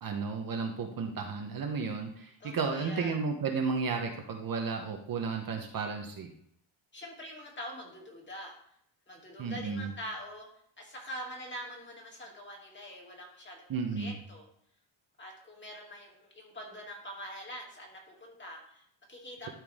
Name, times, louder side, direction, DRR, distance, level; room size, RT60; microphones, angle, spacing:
voice 1, 0.0-6.3 9.4-9.9 13.7-14.1, right 5 dB, 45° right, 3 dB, 1.1 m, -33 dB
voice 2, 2.4-3.2 6.9-8.5 9.1-10.5 10.8-14.5 15.2-19.5, equal, 20° left, -2 dB, 2.6 m, -44 dB
12.0 x 4.6 x 3.6 m, 0.67 s
cardioid pair, 125°, 50 cm